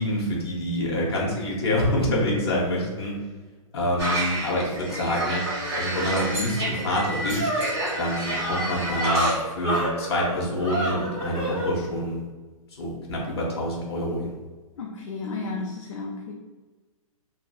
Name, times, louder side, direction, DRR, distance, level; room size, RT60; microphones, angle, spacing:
voice 1, 0.0-3.1 3.7-5.4 5.7-7.5 8.0-12.2 12.8-14.3, left 1 dB, 45° left, -3 dB, 0.8 m, -26 dB
voice 2, 2.1-2.6 14.8-16.3, left 4 dB, 60° left, 0 dB, 0.4 m, -33 dB
sound 1, 4.0-9.4, right 1 dB, 45° right, 1.1 m, -30 dB
sound 2, 6.7-11.7, right 1 dB, 15° right, 0.5 m, -28 dB
2.6 x 2.6 x 2.2 m, 1.3 s
hypercardioid pair, 180°, 18 cm